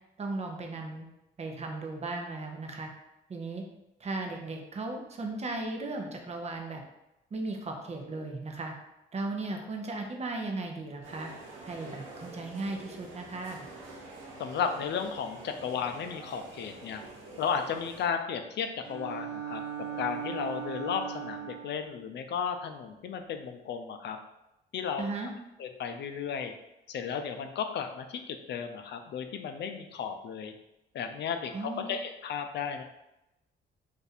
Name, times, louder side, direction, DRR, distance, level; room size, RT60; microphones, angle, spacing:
voice 1, 0.2-1.1 1.4-2.9 3.3-3.6 4.0-6.8 7.3-8.7 9.1-11.3 11.6-13.7 25.0-25.3 31.5-31.9, right 2 dB, 35° right, 3 dB, 0.7 m, -36 dB
sound 1, 11.0-18.1, right 2 dB, 90° right, 0.9 m, -47 dB
voice 2, 14.4-17.0 17.4-19.6 20.0-24.2 24.7-25.1 25.6-26.5 26.9-30.5 30.9-32.8, left 7 dB, 60° left, 7 dB, 0.4 m, -34 dB
Bowed string instrument, 18.8-21.9, right 8 dB, 55° right, 1.2 m, -38 dB
2.6 x 2.5 x 4.1 m, 0.91 s
cardioid pair, 90°, 20 cm